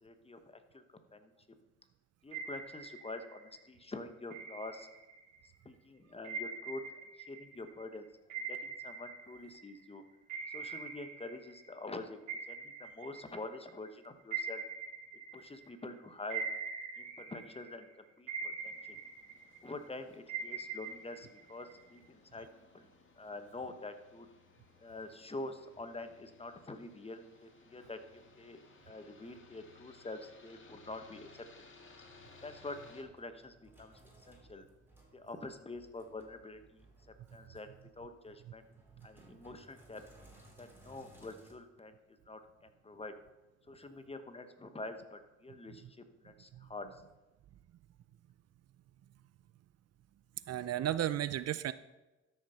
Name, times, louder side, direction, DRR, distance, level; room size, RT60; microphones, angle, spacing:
voice 1, 0.0-0.8 1.1-1.3 2.2-4.9 5.6-6.8 7.2-8.1 8.4-10.0 10.5-12.2 12.5-14.6 15.3-16.4 17.0-19.0 19.6-22.5 22.7-24.3 24.8-28.6 28.9-31.4 32.4-34.0 34.3-34.7 35.1-36.8 37.3-37.7 38.0-38.6 39.0-40.0 40.6-43.1 43.7-45.9 46.2-47.0, left 2 dB, 20° left, 8 dB, 1.1 m, -46 dB
sound 1, 2.3-3.6 4.3-5.5 6.2-9.9 10.3-12.0 12.3-15.8 16.3-17.9 18.3-19.9 20.3-22.0, right 5 dB, 80° right, 1.8 m, -43 dB
sound 2, 18.6-33.0, left 3 dB, 40° left, 2.0 m, -61 dB
Sink (filling or washing), 32.7-41.5, right 1 dB, 5° right, 3.8 m, -62 dB
voice 2, 50.5-51.7, right 11 dB, 55° right, 15 dB, 0.5 m, -33 dB
12.5 x 6.4 x 5.6 m, 1.1 s
cardioid pair, 90°, 30 cm